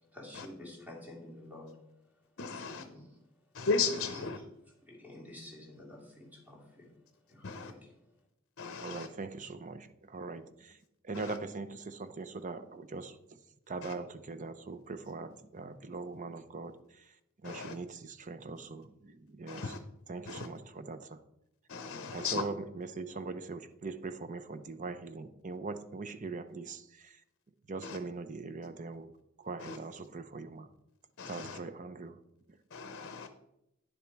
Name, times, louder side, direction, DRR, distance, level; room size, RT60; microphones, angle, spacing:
voice 1, 0.1-1.8 2.5-3.2 4.1-4.4 4.8-6.9 7.3-8.1, left 1 dB, 5° right, 2.6 m, -50 dB
voice 2, 2.4-2.8 3.5-4.4 7.4-7.7 8.6-9.1 11.1-11.4 13.8-13.9 17.4-17.8 19.5-19.8 20.3-20.5 21.7-22.4 27.8-28.0 29.6-29.8 31.2-31.6 32.7-33.3, left 4 dB, 55° left, 0.7 m, -36 dB
voice 3, 8.8-10.8 11.0-13.2 13.7-17.1 17.4-19.7 20.1-21.2 22.1-27.2 27.7-29.1 29.4-30.7 31.3-32.2 32.5-32.6, right 3 dB, 40° right, 0.7 m, -41 dB
10.0 x 7.2 x 4.6 m
head